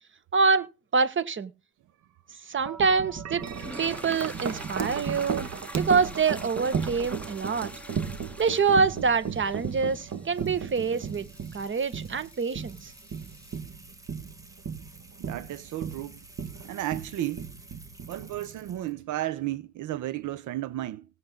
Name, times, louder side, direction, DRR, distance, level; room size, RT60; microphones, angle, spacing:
voice 1, 0.3-1.5 2.5-3.5 3.8-5.5 5.8-7.7 8.4-11.3 11.5-12.9, right 5 dB, 40° right, 1.6 m, -26 dB
Wind chime, 2.7-18.8, right 6 dB, 60° right, 1.9 m, -35 dB
sound 1, 3.4-13.6, equal, 5° left, 3.8 m, -46 dB
sound 2, 10.3-19.0, right 1 dB, 10° right, 3.5 m, -53 dB
voice 2, 15.2-16.2 16.6-17.5 18.1-21.1, right 14 dB, 80° right, 0.8 m, -33 dB
18.0 x 7.7 x 3.9 m
cardioid pair, 90°, 30 cm